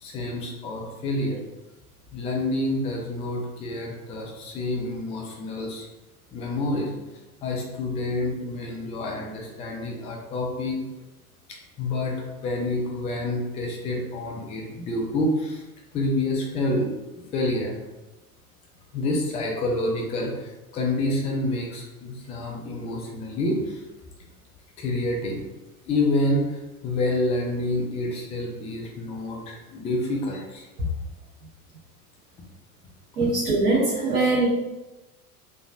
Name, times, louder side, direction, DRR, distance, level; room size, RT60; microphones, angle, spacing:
voice 1, 0.0-1.4 2.1-5.9 6.3-6.9 7.4-10.8 11.5-15.6 15.9-16.9 17.1-17.8 18.9-23.8 24.8-25.4 25.9-30.7, left 1 dB, 15° left, 0 dB, 0.4 m, -28 dB
voice 2, 33.2-34.5, right 3 dB, 80° right, -6 dB, 1.0 m, -22 dB
3.4 x 3.3 x 2.4 m, 1.1 s
figure-of-eight pair, 75°, 47 cm